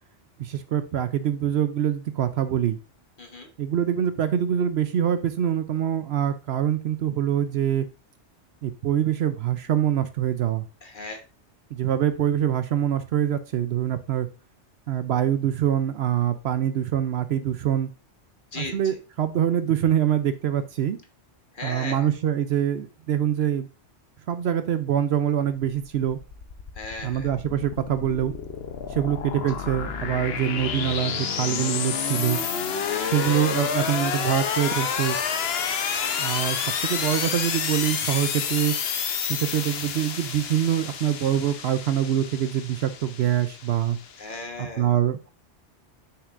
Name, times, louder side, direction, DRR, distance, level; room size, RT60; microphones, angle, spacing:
voice 1, 0.4-2.8 3.6-7.9 8.6-10.7 11.7-14.3 14.9-17.9 18.5-21.0 21.6-23.7 24.3-26.2 27.0-28.3 28.9-32.4 33.0-35.2 36.2-38.7 39.2-44.0 44.6-45.3, right 10 dB, 65° right, 11 dB, 0.8 m, -24 dB
voice 2, 3.2-3.5 10.8-11.2 18.5-18.7 21.5-22.1 26.7-27.3 32.7-33.5 35.9-36.4 44.2-44.9, left 2 dB, 45° left, 4 dB, 1.3 m, -37 dB
sound 1, 25.6-44.4, left 7 dB, 60° left, 0.9 m, -29 dB
6.6 x 5.9 x 2.5 m, 0.33 s
omnidirectional pair, 1.2 m